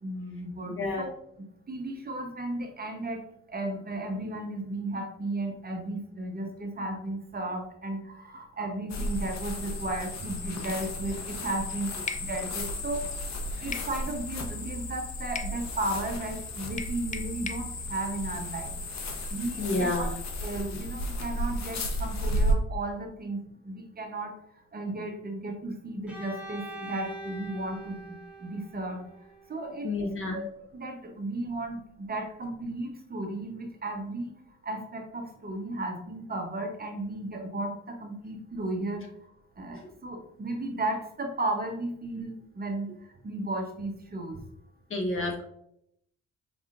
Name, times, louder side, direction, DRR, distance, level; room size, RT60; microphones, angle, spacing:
voice 1, 0.0-1.1 1.7-3.2 3.5-11.9 12.2-13.0 13.6-18.7 19.3-20.1 20.4-24.3 24.7-29.1 29.5-29.9 30.3-30.4 30.7-31.8 32.1-34.3 34.6-39.0 39.6-42.9 43.2-44.4, right 2 dB, 30° right, 3 dB, 0.9 m, -34 dB
sound 1, 8.9-22.5, equal, 60° left, 1.0 m, -33 dB
sound 2, 12.1-12.3 13.7-13.9 15.4-15.6 16.8-17.7, left 5 dB, 25° left, 0.4 m, -36 dB
voice 2, 19.6-20.1 20.7-20.8 29.8-30.4 39.7-39.9 44.9-45.4, left 2 dB, 45° left, 1 dB, 1.3 m, -30 dB
Bowed string instrument, 26.1-29.9, right 2 dB, 5° right, 1.2 m, -43 dB
5.3 x 3.5 x 2.5 m, 0.75 s
cardioid pair, 90°, 30 cm